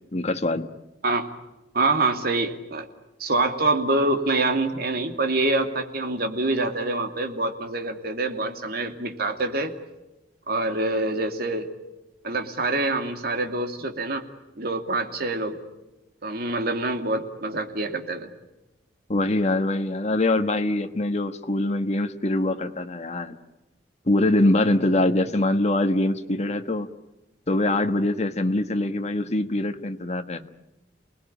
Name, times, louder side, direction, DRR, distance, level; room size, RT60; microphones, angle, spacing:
voice 1, 0.1-0.7 19.1-23.4 24.1-26.9 27.5-30.5, left 1 dB, 40° left, 7 dB, 1.4 m, -23 dB
voice 2, 1.7-2.9 3.2-9.7 10.5-11.7 12.2-14.2 14.6-15.6 16.2-18.3, right 2 dB, 60° right, 5 dB, 2.6 m, -25 dB
29.0 x 20.0 x 10.0 m, 1.0 s
head